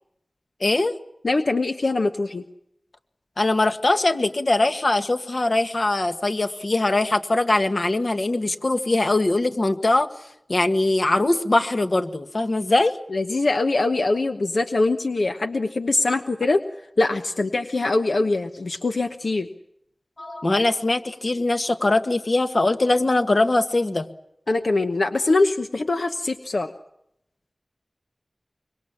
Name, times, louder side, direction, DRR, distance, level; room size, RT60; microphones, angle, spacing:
voice 1, 0.6-0.9 3.4-10.1 10.5-13.0 20.2-24.1, left 2 dB, 60° left, 7 dB, 1.7 m, -21 dB
voice 2, 1.2-2.4 13.1-16.6 17.0-19.5 24.5-26.7, left 2 dB, 90° left, 6 dB, 1.0 m, -23 dB
25.5 x 24.0 x 7.3 m, 0.78 s
wide cardioid pair, 55°, 0 cm